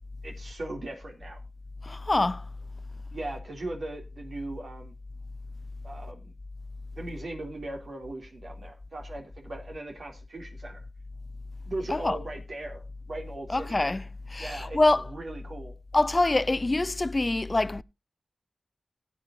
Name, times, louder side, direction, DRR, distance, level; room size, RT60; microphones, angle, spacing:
voice 1, 0.2-1.4 3.1-4.9 5.8-6.3 6.9-10.8 11.7-13.8 14.4-15.7, right 2 dB, 70° right, 2.7 m, -39 dB
voice 2, 1.9-2.4 11.9-12.2 13.5-14.0 14.3-15.0 15.9-17.8, left 2 dB, 35° left, 0.4 m, -25 dB
16.5 x 8.5 x 2.7 m
cardioid pair, 60°, 0 cm